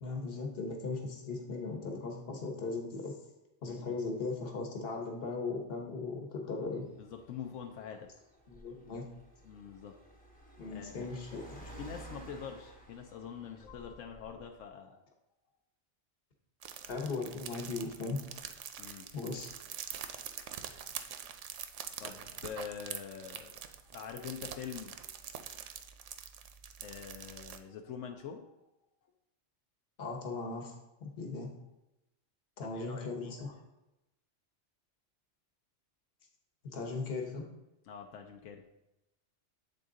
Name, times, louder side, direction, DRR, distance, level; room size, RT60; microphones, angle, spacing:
voice 1, 0.0-3.1 3.6-6.8 8.5-9.1 10.6-11.6 16.9-18.2 19.1-19.5 30.0-31.5 32.6-33.5 36.6-37.5, left 3 dB, 55° left, 1 dB, 1.2 m, -38 dB
voice 2, 3.7-4.0 7.0-8.1 9.4-9.9 10.7-11.4 11.8-15.0 18.8-19.1 22.0-23.6 23.9-24.9 25.5-25.6 26.8-28.6 32.6-33.3 37.8-38.6, left 7 dB, 85° left, 3 dB, 1.0 m, -45 dB
Car, 6.7-14.6, right 1 dB, 10° left, 0.8 m, -53 dB
sound 1, 16.6-27.6, right 9 dB, 75° right, 0.9 m, -45 dB
7.8 x 3.9 x 3.7 m, 0.93 s
omnidirectional pair, 1.3 m